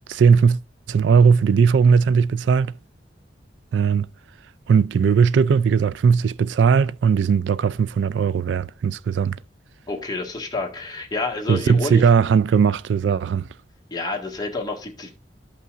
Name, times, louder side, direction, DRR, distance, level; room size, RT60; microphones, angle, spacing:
voice 1, 0.1-0.6 0.9-2.7 3.7-4.1 4.7-9.4 11.5-13.5, right 6 dB, 85° right, 0.3 m, -18 dB
voice 2, 9.9-12.0 13.9-15.1, left 3 dB, 20° left, 1.7 m, -29 dB
13.5 x 5.5 x 2.5 m
head